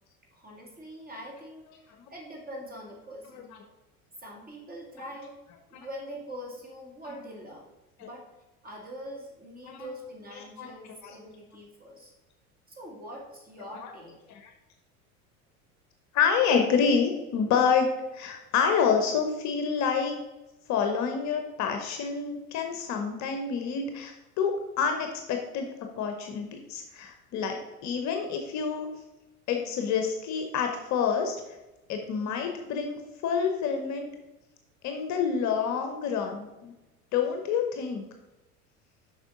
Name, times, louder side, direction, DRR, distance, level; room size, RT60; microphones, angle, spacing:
voice 1, 0.3-3.6 4.2-5.3 5.7-7.7 8.0-8.3 8.6-12.1 12.7-14.2, equal, 20° right, -1 dB, 2.2 m, -43 dB
voice 2, 16.1-20.1 20.7-25.7 26.0-27.6 27.8-28.9 29.5-31.4 31.9-34.1 34.8-36.7 37.1-38.0, left 6 dB, 40° left, 4 dB, 0.9 m, -28 dB
7.3 x 5.6 x 3.7 m, 1.0 s
figure-of-eight pair, 75°, 44 cm